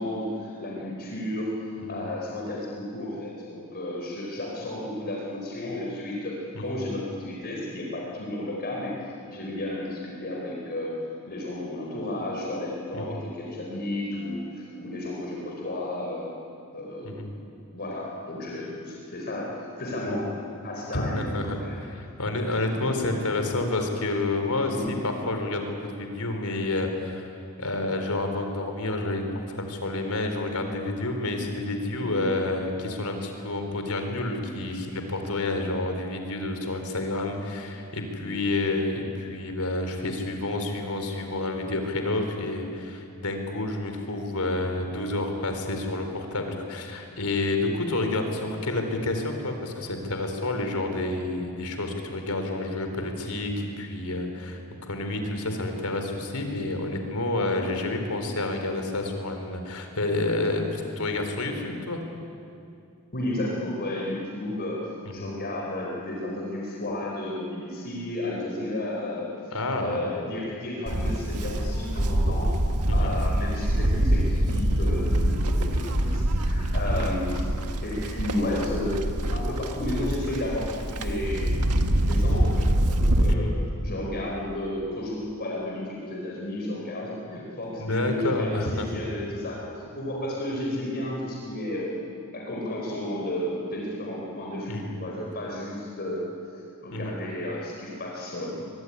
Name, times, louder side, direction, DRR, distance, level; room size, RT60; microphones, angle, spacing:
voice 1, 0.0-1.5 1.9-10.9 11.2-16.3 16.7-17.2 17.7-20.3 20.6-21.7 22.7-23.0 24.7-24.9 32.0-32.2 38.2-38.3 63.1-64.8 65.1-69.4 69.8-72.5 72.9-77.5 77.8-81.5 82.0-83.5 83.8-91.9 92.3-96.2 96.8-98.7, left 1 dB, 45° left, -2 dB, 4.5 m, -32 dB
voice 2, 20.9-27.3 27.6-62.0 65.1-65.3 69.5-70.0 72.9-73.1 76.8-77.1 83.3-83.5 87.8-88.9 94.7-94.9 96.9-97.2, left 2 dB, 80° left, 5 dB, 4.0 m, -29 dB
Livestock farm animals working animals, 70.9-83.3, right 1 dB, 90° right, 1.6 m, -25 dB
23.5 x 23.5 x 9.9 m, 2.5 s
head